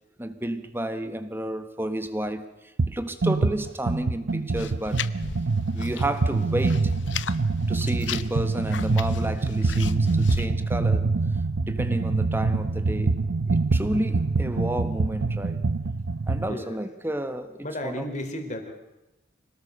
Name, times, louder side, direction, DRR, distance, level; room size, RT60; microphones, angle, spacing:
voice 1, 0.2-5.0 5.7-6.9 7.7-11.1 11.6-13.2 13.5-15.6 16.3-17.6 17.8-18.1, right 1 dB, 10° right, 1.3 m, -31 dB
sound 1, 2.8-2.9 3.2-16.5, right 3 dB, 80° right, 0.7 m, -25 dB
sound 2, 4.5-6.1 6.4-7.4 7.7-10.5, left 6 dB, 75° left, 0.8 m, -35 dB
voice 2, 16.5-16.8 17.6-18.7, left 1 dB, 40° left, 3.3 m, -33 dB
25.5 x 18.0 x 6.6 m
head